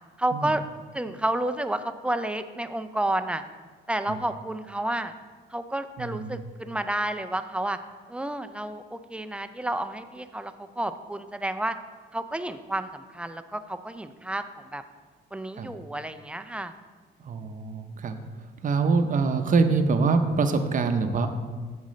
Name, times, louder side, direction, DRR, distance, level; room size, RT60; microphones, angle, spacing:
voice 1, 0.2-0.6 0.9-3.4 3.9-5.1 5.5-7.8 8.1-11.8 12.1-14.8 15.3-16.7, right 1 dB, 5° right, 10 dB, 0.4 m, -30 dB
voice 2, 6.0-6.4 15.6-15.7 17.2-18.2 18.6-21.3, right 4 dB, 40° right, 7 dB, 0.6 m, -24 dB
7.5 x 7.3 x 3.2 m, 1.5 s
cardioid pair, 90°, 20 cm